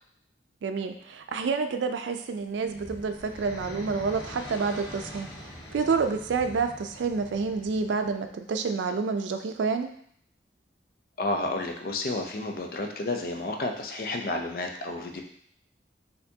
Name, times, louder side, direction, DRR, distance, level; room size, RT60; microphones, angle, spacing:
voice 1, 0.6-5.3 5.7-9.9, right 4 dB, 90° right, 7 dB, 0.4 m, -28 dB
sound 1, 2.3-8.4, equal, 80° left, 1.3 m, -44 dB
voice 2, 11.2-15.2, left 2 dB, 50° left, 3 dB, 0.5 m, -31 dB
4.4 x 2.7 x 2.7 m, 0.65 s
head